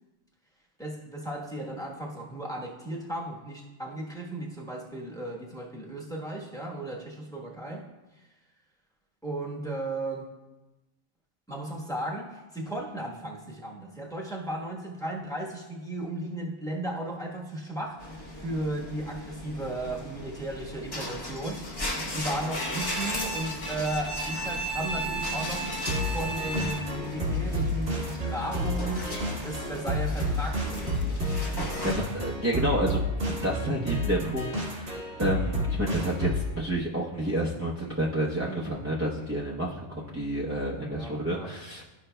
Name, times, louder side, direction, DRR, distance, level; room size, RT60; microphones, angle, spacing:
voice 1, 0.8-7.9 9.2-10.3 11.5-21.6 22.1-25.7 26.1-31.1 31.7-31.9 40.9-41.5, right 1 dB, 5° left, -3 dB, 1.0 m, -35 dB
sound 1, 18.0-31.9, left 1 dB, 25° left, 0.8 m, -37 dB
Bowed string instrument, 22.5-27.1, right 2 dB, 45° left, 1.5 m, -34 dB
sound 2, 25.9-36.5, equal, 75° right, 1.7 m, -30 dB
voice 2, 31.8-41.8, right 1 dB, 15° right, -6 dB, 0.7 m, -30 dB
13.0 x 5.4 x 2.2 m, 1.1 s
omnidirectional pair, 1.2 m